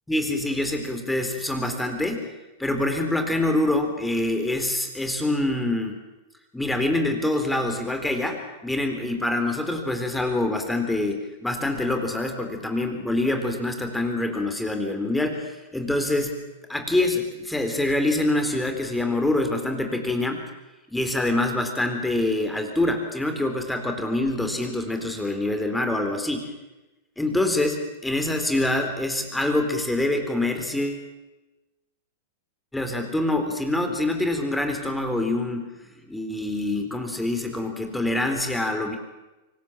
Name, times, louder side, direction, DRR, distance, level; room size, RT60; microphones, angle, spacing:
voice 1, 0.1-2.3 2.6-6.0 6.5-16.3 16.7-20.4 20.9-26.5 27.2-31.0 32.7-35.7 36.1-39.0, left 2 dB, 5° left, 5 dB, 3.9 m, -25 dB
25.0 x 18.5 x 7.6 m, 1.1 s
hypercardioid pair, 115°, 0 cm